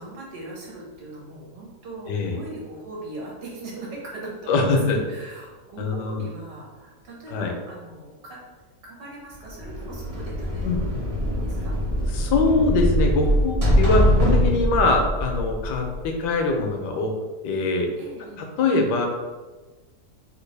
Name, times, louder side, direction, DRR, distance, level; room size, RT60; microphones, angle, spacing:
voice 1, 0.0-8.4 8.8-10.8 11.2-11.7 18.0-18.4, right 2 dB, 70° right, -3 dB, 1.5 m, -39 dB
voice 2, 2.1-2.4 4.5-5.0 5.8-6.3 7.3-7.5 10.6-11.0 12.1-17.1 17.4-17.9 18.4-19.1, left 3 dB, 80° left, 3 dB, 1.2 m, -23 dB
sound 1, 9.5-16.3, equal, 40° right, 0.5 m, -23 dB
3.3 x 2.3 x 3.2 m, 1.3 s
omnidirectional pair, 1.8 m